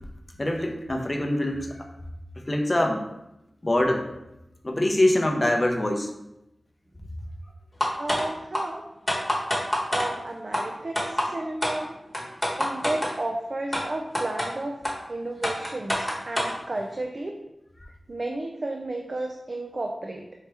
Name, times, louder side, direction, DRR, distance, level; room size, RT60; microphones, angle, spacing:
voice 1, 0.4-1.8 2.5-3.0 3.6-4.1 4.6-6.1, left 1 dB, 30° left, 3 dB, 0.6 m, -24 dB
sound 1, 7.8-8.2 8.5-8.6 9.1-10.1 10.5-10.6 11.0-11.3 11.6-11.7 12.1-13.1 13.7-13.8 14.1-14.5 14.8-14.9 15.4-16.5, left 1 dB, 10° left, 1.0 m, -25 dB
voice 2, 8.0-8.8 9.9-11.9 12.6-14.8 15.1-17.4 18.1-20.3, right 2 dB, 45° right, 2 dB, 0.4 m, -32 dB
4.6 x 2.8 x 3.3 m, 0.88 s
wide cardioid pair, 90°, 0 cm